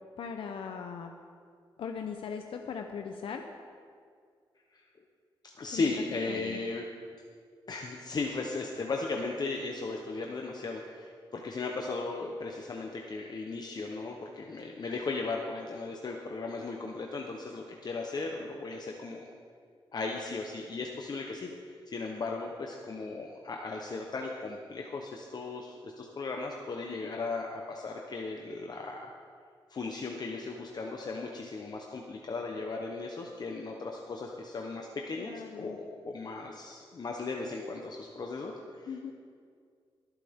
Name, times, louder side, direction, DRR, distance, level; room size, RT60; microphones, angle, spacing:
voice 1, 0.2-1.1 1.8-3.4 5.7-5.9 6.3-6.6 26.9-27.1 35.2-35.8 38.9-39.1, left 6 dB, 80° left, 4 dB, 0.8 m, -39 dB
voice 2, 5.6-6.8 7.7-19.3 19.9-21.5 21.9-29.1 29.7-39.1, left 3 dB, 50° left, 0 dB, 1.0 m, -36 dB
23.0 x 8.3 x 3.7 m, 2.1 s
cardioid pair, 90°, 9 cm